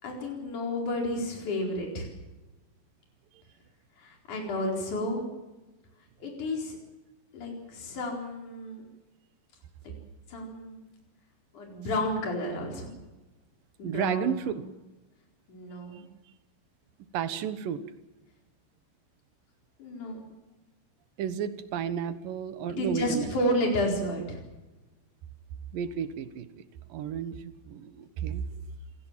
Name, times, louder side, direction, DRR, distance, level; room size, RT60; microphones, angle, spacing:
voice 1, 0.0-2.1 4.0-5.2 6.2-6.8 7.3-8.8 9.8-9.9 10.3-10.9 11.5-12.9 13.8-14.5 15.5-16.0 19.8-20.2 22.8-24.4, left 1 dB, 60° left, 0 dB, 5.8 m, -31 dB
voice 2, 13.8-14.7 17.1-17.8 21.2-23.4 25.7-26.6 26.9-28.5, right 8 dB, 80° right, 11 dB, 3.0 m, -32 dB
27.5 x 17.0 x 7.5 m, 1.1 s
omnidirectional pair, 3.9 m